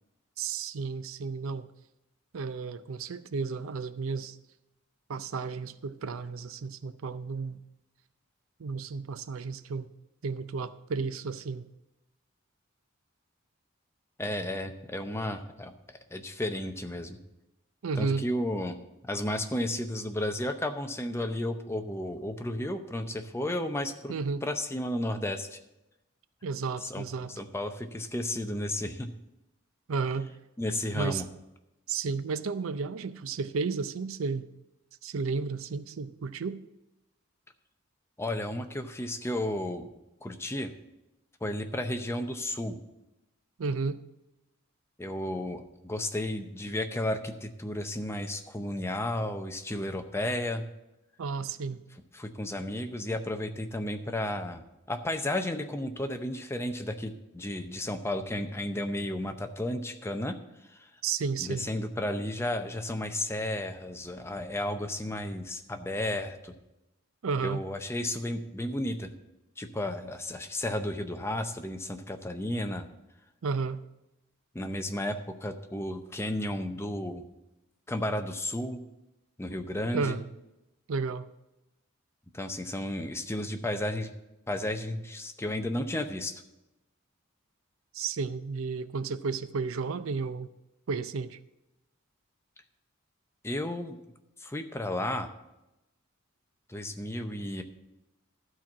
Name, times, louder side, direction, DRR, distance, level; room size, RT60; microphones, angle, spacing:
voice 1, 0.4-1.7 2.3-4.4 5.1-7.6 8.6-9.9 10.2-11.7 17.8-18.2 24.1-24.4 26.4-27.3 29.9-30.3 30.9-31.2 31.9-34.4 35.0-36.6 43.6-44.0 51.2-51.8 61.0-61.7 67.2-67.6 73.4-73.8 79.9-80.3 80.9-81.3 87.9-90.5 90.9-91.4, right 4 dB, 80° right, 13 dB, 0.5 m, -32 dB
voice 2, 14.2-17.2 18.0-18.8 19.1-24.2 24.4-25.6 26.8-29.1 30.6-31.3 38.2-39.9 40.2-40.7 41.4-42.8 45.0-50.6 52.1-54.6 54.9-60.4 60.7-60.9 61.4-66.5 67.4-69.1 69.6-72.9 74.5-77.2 77.9-78.8 79.4-80.2 82.3-84.1 84.5-86.3 93.4-94.0 94.4-95.3 96.7-97.6, left 1 dB, 15° left, 6 dB, 0.6 m, -33 dB
12.5 x 4.5 x 7.1 m, 0.92 s
head